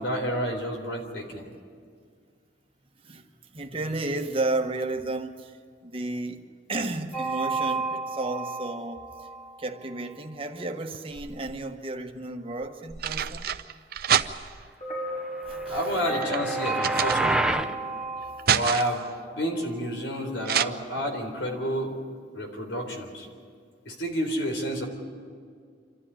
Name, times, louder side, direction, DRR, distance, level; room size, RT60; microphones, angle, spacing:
voice 1, 0.0-1.5 15.7-17.7 18.5-19.0 19.3-22.0 22.3-23.3 23.9-24.9, equal, 80° left, 4 dB, 3.9 m, -30 dB
voice 2, 3.5-9.3 9.6-13.5 15.5-15.8, right 2 dB, 30° right, 4 dB, 1.3 m, -32 dB
sound 1, 7.1-10.1 14.8-19.8, right 3 dB, 35° left, 4.2 m, -32 dB
sound 2, 10.9-11.7 12.6-14.7 15.4-17.7 18.1-19.1 20.5-20.7, right 8 dB, 50° right, 0.6 m, -28 dB
sound 3, 15.5-17.7, right 1 dB, 5° right, 0.5 m, -29 dB
27.5 x 13.0 x 9.9 m, 2.1 s
head